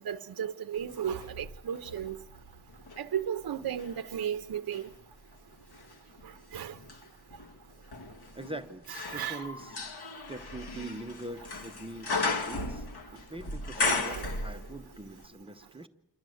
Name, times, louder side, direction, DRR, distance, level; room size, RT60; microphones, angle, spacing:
voice 1, 0.1-2.2 3.0-4.8 6.5-6.7 9.1-9.4 13.8-14.3, right 9 dB, 60° right, 0.7 m, -34 dB
sound 1, 0.9-3.1 3.6-15.0 15.2-15.3, left 3 dB, 70° left, 1.9 m, -36 dB
voice 2, 8.3-8.9 9.1-9.8 10.3-12.9 13.1-15.9, right 1 dB, 15° right, 0.7 m, -43 dB
28.0 x 12.0 x 7.7 m
wide cardioid pair, 155°, 40 cm